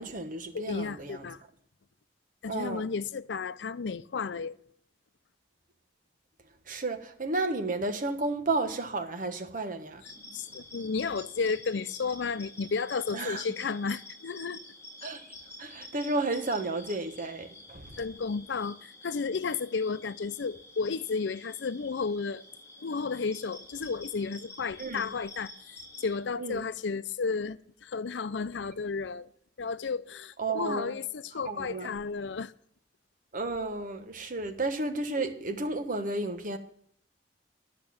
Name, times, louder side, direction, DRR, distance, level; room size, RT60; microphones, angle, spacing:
voice 1, 0.0-1.3 2.5-2.8 6.7-10.0 13.1-13.4 15.0-15.2 15.6-18.0 24.8-25.1 26.4-26.6 30.4-30.9 31.4-31.9 33.3-36.6, right 2 dB, 50° right, 1.3 m, -32 dB
voice 2, 0.5-1.4 2.4-4.6 10.0-14.6 18.0-22.4 22.8-29.3 29.6-32.5, left 5 dB, 90° left, 0.5 m, -33 dB
sound 1, 10.0-26.2, left 2 dB, 15° left, 3.1 m, -49 dB
10.5 x 6.7 x 8.6 m
head